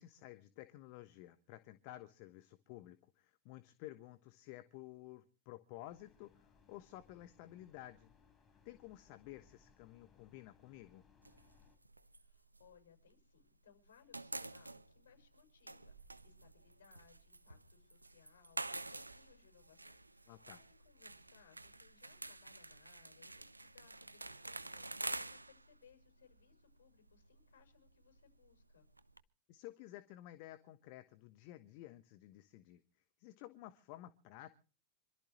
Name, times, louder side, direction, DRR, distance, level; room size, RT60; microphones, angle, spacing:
voice 1, 0.0-8.1 8.6-11.0 20.3-20.6 29.5-32.8 33.2-34.5, left 15 dB, 45° left, 12 dB, 1.1 m, -53 dB
sound 1, 5.8-11.8, left 5 dB, 20° left, 4.8 m, -68 dB
sound 2, 11.2-13.5 13.8-29.2, right 2 dB, 85° right, 0.8 m, -49 dB
voice 2, 12.2-28.8, left 8 dB, 60° left, 5 dB, 6.2 m, -68 dB
26.5 x 13.5 x 3.1 m, 0.37 s
figure-of-eight pair, 90°, 0 cm